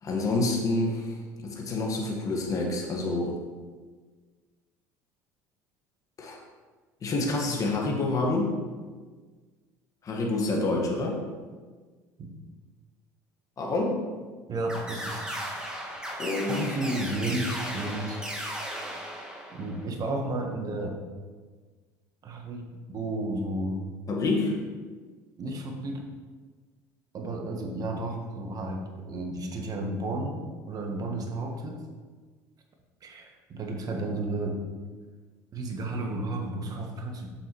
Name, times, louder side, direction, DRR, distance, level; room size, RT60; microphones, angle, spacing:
voice 1, 0.0-3.4 6.2-6.4 7.0-8.5 10.0-11.2 13.6-14.0 16.2-16.7 24.1-24.6, left 2 dB, 40° left, 0 dB, 1.5 m, -27 dB
voice 2, 14.5-15.4 16.1-16.2 16.5-18.2 19.5-21.0 22.2-23.8 25.4-26.0 27.1-31.8 33.0-34.6 35.5-37.3, right 2 dB, 45° right, 3 dB, 1.3 m, -32 dB
sound 1, 14.7-19.8, equal, 10° right, 1.8 m, -36 dB
7.1 x 6.9 x 3.1 m, 1.4 s
hypercardioid pair, 75°, 9 cm